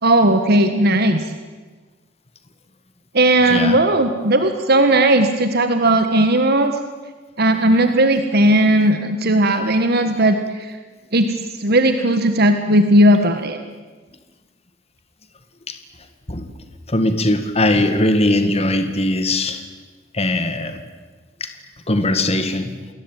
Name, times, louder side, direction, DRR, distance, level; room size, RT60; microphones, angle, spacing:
voice 1, 0.0-1.3 3.1-6.7 7.4-10.8 11.1-13.6, right 1 dB, 55° right, 7 dB, 1.6 m, -16 dB
voice 2, 3.5-3.8 15.7-15.8 16.3-16.5 16.9-19.6 20.1-20.8 21.4-21.5 21.9-22.7, left 1 dB, 35° left, 8 dB, 2.0 m, -20 dB
28.5 x 20.5 x 9.3 m, 1.4 s
head